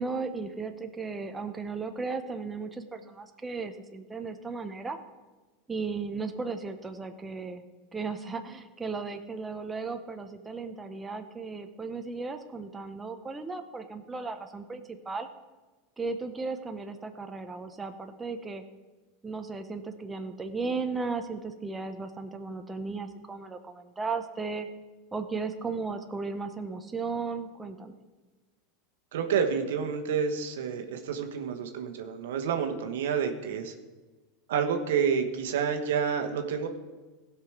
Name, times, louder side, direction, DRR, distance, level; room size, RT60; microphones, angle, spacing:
voice 1, 0.0-5.0 5.7-7.6 7.9-15.3 16.0-18.6 19.2-24.7 25.1-28.0, right 4 dB, 15° right, 6 dB, 0.9 m, -35 dB
voice 2, 29.1-33.7 34.5-36.7, right 7 dB, 75° right, 5 dB, 1.2 m, -29 dB
16.0 x 5.9 x 4.7 m, 1.2 s
hypercardioid pair, 95°, 0 cm